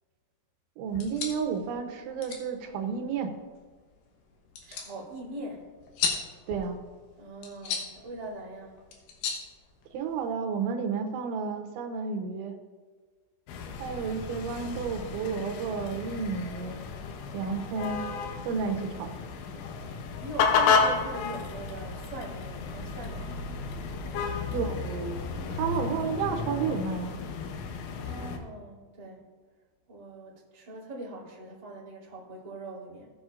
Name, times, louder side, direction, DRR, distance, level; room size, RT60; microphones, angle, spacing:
voice 1, 0.8-3.4 6.5-6.8 9.9-12.5 13.8-16.8 17.3-18.0 18.5-19.2 24.5-25.2 25.5-27.2, right 5 dB, 90° right, 4 dB, 3.3 m, -31 dB
sound 1, 0.9-10.3, left 6 dB, 70° left, 2.4 m, -38 dB
voice 2, 4.6-5.7 7.2-8.9 18.6-18.7 19.5-23.5 23.9-24.7 27.9-29.2 29.9-33.1, right 1 dB, 10° right, -8 dB, 2.0 m, -42 dB
sound 2, 13.5-28.4, left 5 dB, 85° left, 3.3 m, -32 dB
17.5 x 7.8 x 2.5 m, 1.4 s
omnidirectional pair, 5.2 m